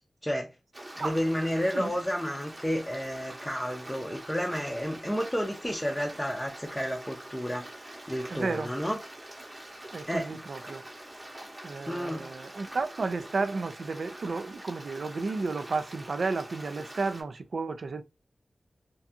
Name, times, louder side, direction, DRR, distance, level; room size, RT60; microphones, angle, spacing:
Stream, 0.7-17.2, right 1 dB, 30° right, 0.8 m, -45 dB
voice 1, 1.0-7.7 8.1-9.0 10.1-10.4 11.9-12.3, equal, 5° left, 0.4 m, -31 dB
voice 2, 8.3-8.7 9.9-10.8 11.6-18.0, right 4 dB, 75° right, 0.3 m, -32 dB
2.6 x 2.2 x 2.6 m
wide cardioid pair, 80°, 0 cm